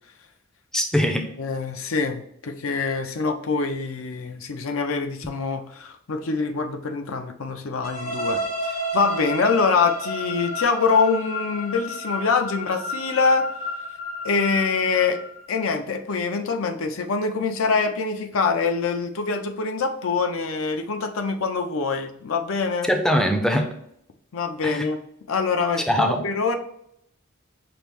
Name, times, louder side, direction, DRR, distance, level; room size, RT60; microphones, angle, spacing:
voice 1, 0.7-1.3 22.8-23.7 24.6-24.9 25.9-26.2, equal, 5° left, 4 dB, 0.4 m, -22 dB
voice 2, 1.4-13.5 14.2-15.2 15.5-22.9 24.3-25.0 25.3-25.8 26.2-26.6, left 4 dB, 85° left, 5 dB, 0.5 m, -24 dB
sound 1, 7.8-15.6, left 1 dB, 45° left, 0.7 m, -31 dB
5.8 x 2.0 x 3.4 m, 0.73 s
head